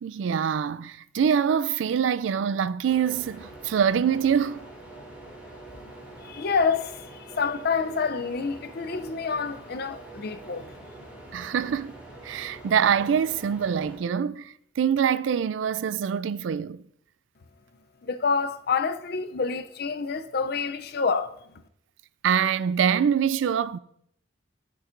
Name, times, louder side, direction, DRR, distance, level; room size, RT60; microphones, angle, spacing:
voice 1, 0.0-4.7 11.3-11.9 12.2-16.8 22.2-23.8, right 7 dB, 80° right, 0.3 m, -25 dB
sound 1, 2.9-14.0, right 2 dB, 5° right, 2.4 m, -45 dB
voice 2, 6.2-10.7 18.0-21.3, left 5 dB, 55° left, 0.5 m, -28 dB
12.5 x 6.9 x 2.5 m
head